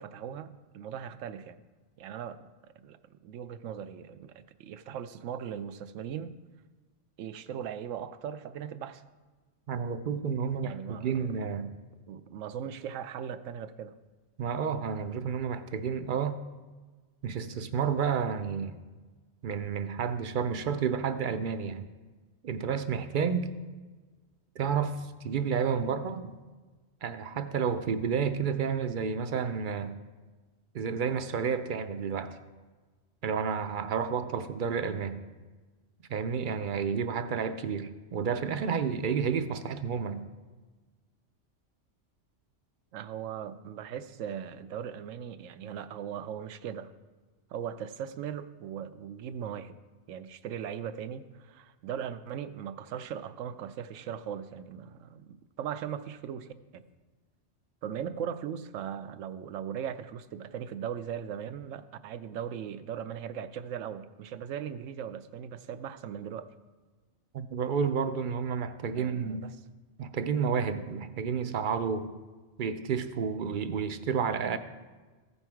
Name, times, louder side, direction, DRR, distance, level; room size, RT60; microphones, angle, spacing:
voice 1, 0.0-1.6 2.0-2.4 2.8-6.3 7.2-9.0 10.6-11.3 12.1-13.9 42.9-46.9 47.5-49.7 50.1-56.8 57.8-66.5 69.0-69.5, right 8 dB, 85° right, 12 dB, 1.0 m, -39 dB
voice 2, 9.7-11.7 14.4-16.4 17.2-18.8 19.4-21.9 22.4-23.5 24.6-26.4 27.0-29.9 30.7-32.4 33.2-35.2 36.1-40.2 67.3-69.5 70.0-72.1 72.6-74.6, right 6 dB, 55° right, 10 dB, 0.6 m, -30 dB
15.0 x 5.6 x 4.5 m, 1.3 s
omnidirectional pair, 1.3 m